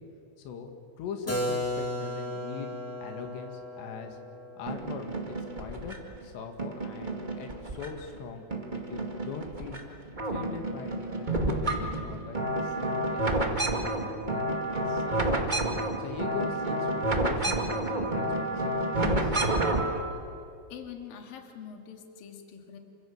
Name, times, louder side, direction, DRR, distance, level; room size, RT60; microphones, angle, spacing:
voice 1, 0.4-0.7 1.0-2.7 3.0-4.2 4.6-6.0 6.2-9.8 10.2-15.5 16.0-19.4, left 6 dB, 90° left, 5 dB, 4.2 m, -41 dB
Keyboard (musical), 1.3-6.9, left 1 dB, 15° left, 0.5 m, -36 dB
sound 1, 4.7-6.1 6.6-8.2 8.5-9.8 10.1-20.0, right 1 dB, 45° right, 0.6 m, -30 dB
voice 2, 20.7-22.8, left 8 dB, 60° left, 4 dB, 3.7 m, -44 dB
27.5 x 25.5 x 7.4 m, 2.6 s
omnidirectional pair, 4.8 m